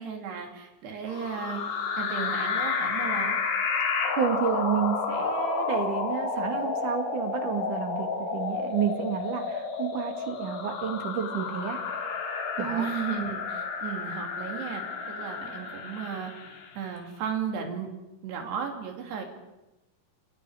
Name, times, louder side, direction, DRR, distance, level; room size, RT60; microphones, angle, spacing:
voice 1, 0.0-1.6 2.0-3.4 12.6-16.3 16.7-17.9 18.2-19.2, right 7 dB, 85° right, 2 dB, 4.9 m, -34 dB
sound 1, 1.1-16.8, left 5 dB, 85° left, 4.9 m, -31 dB
voice 2, 4.2-11.8 12.6-12.9, right 8 dB, 55° right, 5 dB, 3.3 m, -30 dB
29.5 x 24.5 x 5.0 m, 0.98 s
omnidirectional pair, 4.6 m